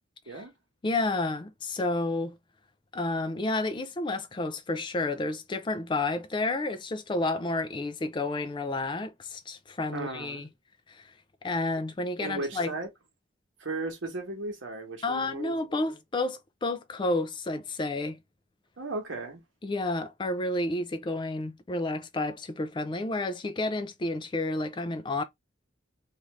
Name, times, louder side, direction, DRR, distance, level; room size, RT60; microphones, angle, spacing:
voice 1, 0.8-2.4 2.9-10.5 10.9-11.0 11.4-12.7 15.0-18.2 19.6-25.2, left 2 dB, 25° left, 0.4 m, -30 dB
voice 2, 9.9-10.5 12.2-12.9 13.6-16.0 18.8-19.4, right 2 dB, 85° right, 1.0 m, -36 dB
2.7 x 2.5 x 3.0 m
head